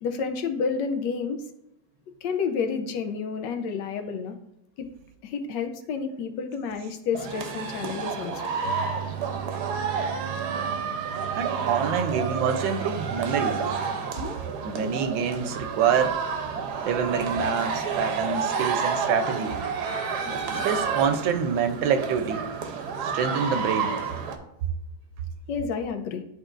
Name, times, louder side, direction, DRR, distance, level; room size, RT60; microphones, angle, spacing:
voice 1, 0.0-1.4 2.2-4.4 4.8-4.9 5.2-8.5 14.2-14.3 16.6-16.7 20.2-20.4 25.5-26.2, left 5 dB, 75° left, 6 dB, 1.2 m, -30 dB
sound 1, 7.1-24.4, right 5 dB, 65° right, 1.1 m, -30 dB
sound 2, 8.6-13.9, right 9 dB, 35° right, 1.1 m, -37 dB
voice 2, 11.3-13.6 14.6-16.2 16.8-19.6 20.5-22.5 23.0-23.9, right 6 dB, 85° right, 9 dB, 1.4 m, -26 dB
11.0 x 3.7 x 2.5 m, 0.83 s
omnidirectional pair, 2.0 m